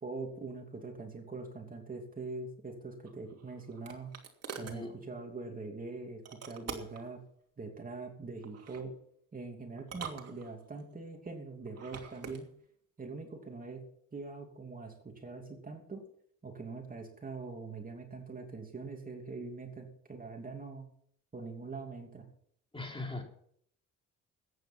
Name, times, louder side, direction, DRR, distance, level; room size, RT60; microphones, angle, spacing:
voice 1, 0.0-4.1 4.6-7.2 7.6-8.9 9.3-12.5 13.0-13.8 14.1-16.0 16.4-20.9 21.3-22.2, right 3 dB, 30° right, 3 dB, 2.9 m, -43 dB
sound 1, 3.0-4.8 6.2-7.1 8.4-8.9 9.8-10.8 11.7-12.4, right 6 dB, 55° right, 2.8 m, -45 dB
voice 2, 4.5-5.0 22.7-23.2, left 2 dB, 15° left, 2 dB, 3.5 m, -40 dB
14.5 x 9.5 x 5.9 m, 0.64 s
cardioid pair, 90°, 30 cm